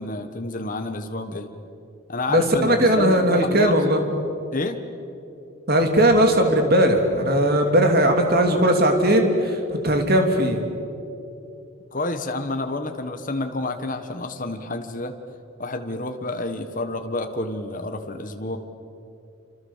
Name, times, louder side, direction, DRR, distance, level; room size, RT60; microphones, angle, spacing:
voice 1, 0.0-1.5 2.1-3.8 4.5-4.8 7.6-7.7 11.9-15.2 15.6-18.6, left 2 dB, 40° left, 6 dB, 1.4 m, -29 dB
voice 2, 2.3-4.0 5.7-10.6, right 1 dB, 45° right, 4 dB, 2.9 m, -18 dB
27.5 x 26.0 x 7.4 m, 2.7 s
head